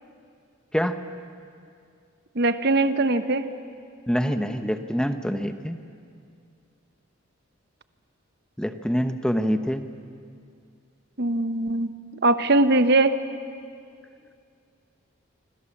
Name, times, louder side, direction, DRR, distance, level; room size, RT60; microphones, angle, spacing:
voice 1, 2.3-3.5 11.2-11.9 12.2-13.2, right 2 dB, 50° right, 11 dB, 1.0 m, -21 dB
voice 2, 4.1-5.8 8.6-9.9, equal, 5° left, 8 dB, 1.0 m, -25 dB
27.0 x 26.0 x 7.3 m, 2.3 s
head